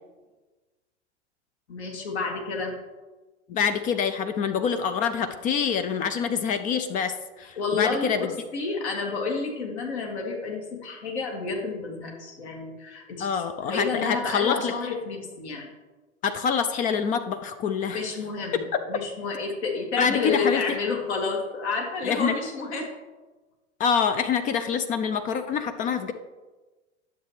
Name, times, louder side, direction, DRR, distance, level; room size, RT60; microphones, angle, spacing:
voice 1, 1.7-2.8 7.6-8.3 8.5-15.7 17.9-18.6 18.9-22.9, left 4 dB, 65° left, 0 dB, 2.4 m, -30 dB
voice 2, 3.5-8.3 13.2-14.7 16.2-18.0 18.5-18.8 20.0-20.6 22.0-22.3 23.8-26.1, left 7 dB, 25° left, 9 dB, 0.4 m, -26 dB
10.0 x 7.0 x 3.2 m, 1.2 s
figure-of-eight pair, 95°, 36 cm